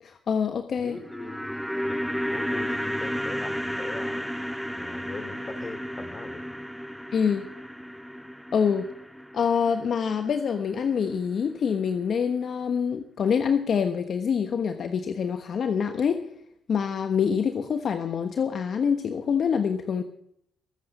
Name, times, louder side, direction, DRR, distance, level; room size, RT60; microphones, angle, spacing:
voice 1, 0.0-1.0 7.1-7.5 8.5-8.9 9.3-16.2 16.7-20.0, left 6 dB, 55° left, 7 dB, 1.2 m, -26 dB
voice 2, 0.8-1.5 1.9-4.3 4.7-6.4, left 3 dB, 30° left, 10 dB, 2.8 m, -41 dB
sound 1, 0.8-11.1 11.4-11.5, equal, ahead, 0.7 m, -33 dB
22.0 x 8.0 x 6.5 m, 0.72 s
cardioid pair, 90°, 0 cm